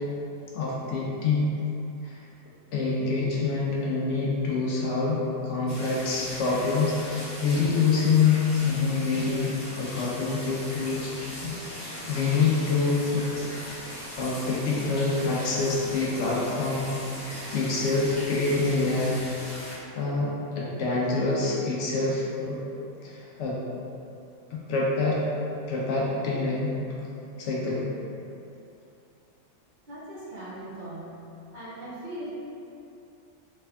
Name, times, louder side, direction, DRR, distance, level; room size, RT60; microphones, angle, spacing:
voice 1, 0.5-1.5 2.0-2.2 2.7-11.2 11.4-13.2 14.2-16.9 17.5-19.2 20.0-22.6 23.0-23.6 24.5-25.2 25.7-26.7 27.4-27.9, left 4 dB, 70° left, -5 dB, 0.9 m, -26 dB
sound 1, 5.7-19.8, equal, 20° left, 0.5 m, -39 dB
voice 2, 29.9-31.3 31.5-32.3, right 1 dB, 45° right, -10 dB, 0.7 m, -39 dB
3.4 x 3.3 x 2.2 m, 2.7 s
omnidirectional pair, 1.3 m